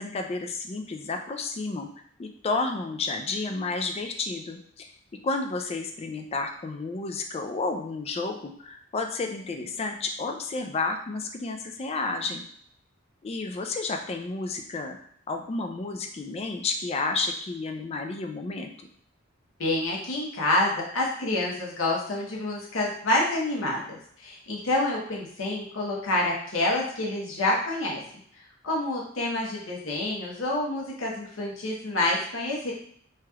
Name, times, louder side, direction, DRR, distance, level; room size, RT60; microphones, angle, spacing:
voice 1, 0.0-1.9 2.2-4.9 5.2-12.4 13.2-15.0 15.3-18.7, left 3 dB, 30° left, 5 dB, 0.3 m, -31 dB
voice 2, 19.6-28.0 28.6-32.7, left 2 dB, 85° left, -3 dB, 0.9 m, -27 dB
3.2 x 2.9 x 2.3 m, 0.63 s
head